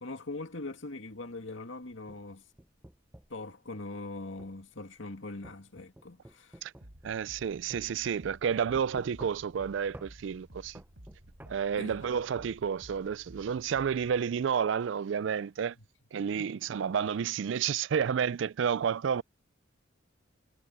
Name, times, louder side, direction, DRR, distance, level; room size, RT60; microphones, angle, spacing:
voice 1, 0.0-2.4 3.3-6.6 11.7-12.1 15.8-15.9 16.2-16.5, left 2 dB, 70° left, 2.3 m, -42 dB
sound 1, 1.9-3.4 4.4-4.6 5.4-7.4 7.7-7.8 8.7-9.6 9.9-10.1 10.8-11.5, right 1 dB, 10° right, 0.7 m, -51 dB
sound 2, 6.8-14.2, equal, 80° right, 3.7 m, -53 dB
voice 2, 7.0-10.8 11.5-15.8 16.1-19.2, right 7 dB, 65° right, 0.3 m, -30 dB
head